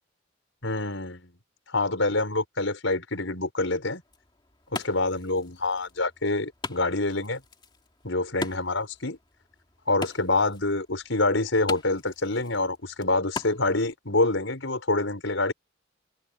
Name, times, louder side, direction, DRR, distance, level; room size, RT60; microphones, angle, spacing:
voice 1, 0.6-1.3 1.7-4.0 4.7-7.4 8.0-9.2 9.9-15.5, left 2 dB, 80° left, 5.3 m, -26 dB
Wood, 3.9-13.9, left 3 dB, 25° left, 2.6 m, -41 dB
head